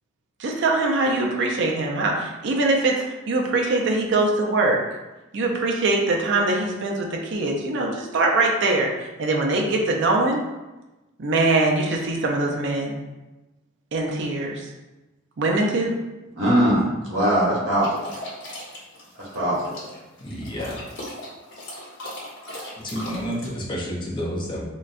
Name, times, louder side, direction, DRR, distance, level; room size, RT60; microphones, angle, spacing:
voice 1, 0.4-4.8 5.3-10.4 11.2-13.0 13.9-14.6 15.4-16.0, right 2 dB, 60° right, 0 dB, 0.4 m, -22 dB
voice 2, 16.3-18.1 19.1-19.8, equal, 85° right, -6 dB, 1.1 m, -21 dB
sound 1, 17.8-23.5, left 1 dB, 65° left, 1.0 m, -38 dB
voice 3, 20.2-20.8 22.8-24.6, equal, 25° left, -3 dB, 0.6 m, -30 dB
3.9 x 2.1 x 2.5 m, 1.1 s
head